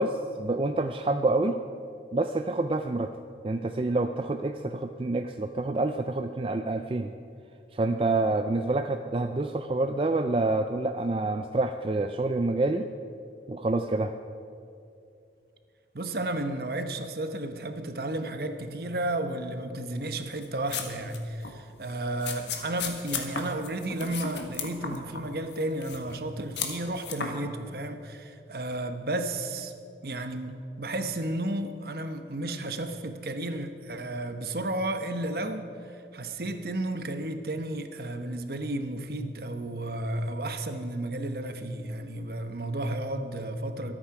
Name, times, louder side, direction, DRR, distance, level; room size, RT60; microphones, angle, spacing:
voice 1, 0.0-1.6 2.1-3.1 3.4-7.1 7.7-12.9 13.5-14.1, right 2 dB, 30° right, 7 dB, 0.4 m, -27 dB
voice 2, 15.9-29.7 30.0-43.9, right 1 dB, 60° right, 7 dB, 1.0 m, -33 dB
sound 1, 20.4-21.2 21.4-21.6 22.2-25.2 25.5-26.2 26.6-27.3, left 6 dB, 85° left, 1.5 m, -34 dB
23.5 x 8.7 x 4.8 m, 2.5 s
head